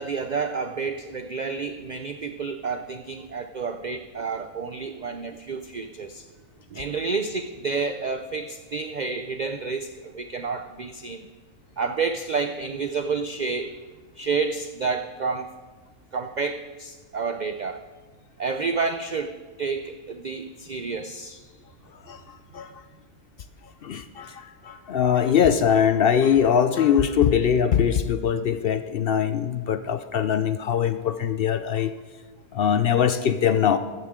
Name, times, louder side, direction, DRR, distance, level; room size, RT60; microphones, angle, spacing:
voice 1, 0.0-6.3 6.7-11.3 11.8-13.8 14.1-15.5 16.1-17.8 18.4-21.5, right 4 dB, 60° right, 8 dB, 0.4 m, -30 dB
voice 2, 22.1-22.8 23.8-31.9 32.5-33.8, left 8 dB, 65° left, 11 dB, 0.5 m, -22 dB
15.5 x 13.5 x 3.7 m, 1.3 s
omnidirectional pair, 1.5 m